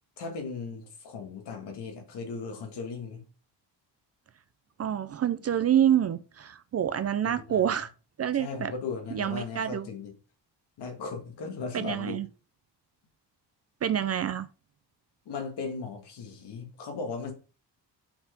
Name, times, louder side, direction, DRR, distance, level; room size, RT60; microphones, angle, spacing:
voice 1, 0.2-3.2 7.2-7.6 8.3-10.1 10.8-12.2 15.3-17.3, left 4 dB, 70° left, 2.1 m, -37 dB
voice 2, 4.8-7.9 8.2-8.7 9.1-9.9 11.7-12.3 13.8-14.5, right 10 dB, 35° right, 0.4 m, -27 dB
5.7 x 4.7 x 5.2 m
cardioid pair, 165°, 42 cm